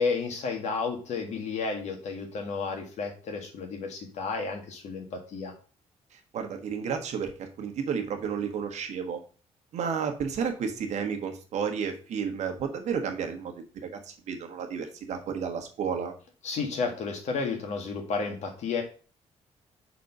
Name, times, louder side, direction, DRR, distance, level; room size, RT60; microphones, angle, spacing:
voice 1, 0.0-5.5 16.4-18.8, left 4 dB, 70° left, 3 dB, 1.7 m, -32 dB
voice 2, 6.1-9.2 9.7-16.1, right 6 dB, 70° right, 5 dB, 1.3 m, -32 dB
5.2 x 4.3 x 5.4 m, 0.38 s
cardioid pair, 160°, 12 cm